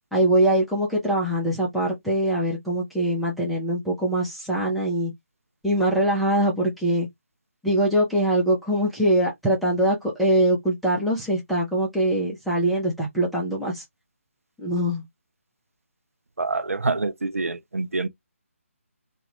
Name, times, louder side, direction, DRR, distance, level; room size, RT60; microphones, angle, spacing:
voice 1, 0.1-5.1 5.6-7.1 7.6-13.8 14.6-15.0, right 1 dB, ahead, 0.4 m, -23 dB
voice 2, 16.4-18.1, right 3 dB, 70° right, 0.4 m, -26 dB
2.2 x 2.2 x 2.8 m
figure-of-eight pair, 145°, 8 cm